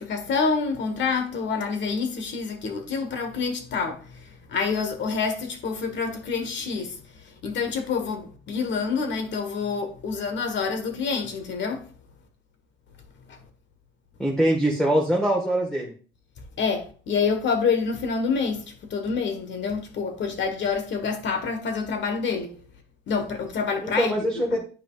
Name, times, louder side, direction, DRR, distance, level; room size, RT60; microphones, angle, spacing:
voice 1, 0.0-11.8 13.3-13.4 16.6-18.6 18.9-22.6 23.1-24.6, left 5 dB, 65° left, 1.4 m, -27 dB
voice 2, 14.2-15.9 23.8-24.6, right 1 dB, 5° left, 1.5 m, -23 dB
9.4 x 5.0 x 2.4 m
cardioid pair, 90°, 20 cm